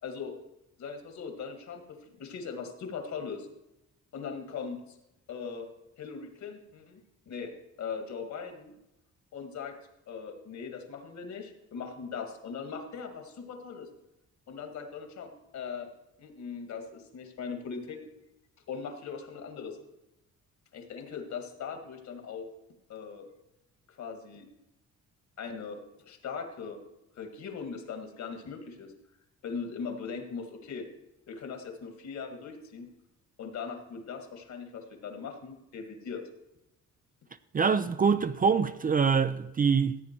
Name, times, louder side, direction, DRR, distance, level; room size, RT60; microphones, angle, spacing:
voice 1, 0.0-0.3 0.8-3.5 4.1-5.0 5.3-5.7 6.0-7.5 7.8-8.7 9.3-9.7 10.1-13.9 14.5-15.9 16.2-18.0 18.7-19.8 20.7-22.5 22.9-23.3 24.0-24.5 25.4-26.8 27.2-28.9 29.4-30.9 31.3-32.9 33.4-36.2, left 5 dB, 65° left, 2.1 m, -40 dB
voice 2, 37.5-40.0, right 6 dB, 30° right, 0.5 m, -25 dB
14.5 x 8.6 x 4.5 m
cardioid pair, 90°, 30 cm